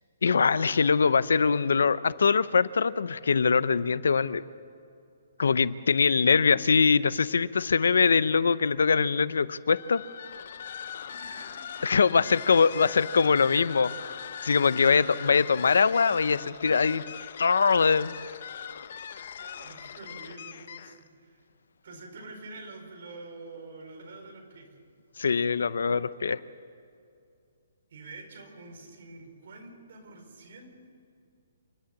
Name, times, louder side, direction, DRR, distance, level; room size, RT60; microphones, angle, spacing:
voice 1, 0.2-4.4 5.4-10.0 11.8-17.0 17.4-18.1 25.2-26.4, left 5 dB, 85° left, 16 dB, 0.7 m, -23 dB
sound 1, 9.7-21.1, left 8 dB, 40° left, 0.8 m, -41 dB
voice 2, 11.2-12.7 13.3-13.6 13.9-14.2 14.7-14.8 17.0-17.4 19.4-21.4 21.8-24.7 27.9-30.7, right 3 dB, 45° right, 3 dB, 4.7 m, -47 dB
29.0 x 11.5 x 8.3 m, 2.4 s
hypercardioid pair, 175°, 0 cm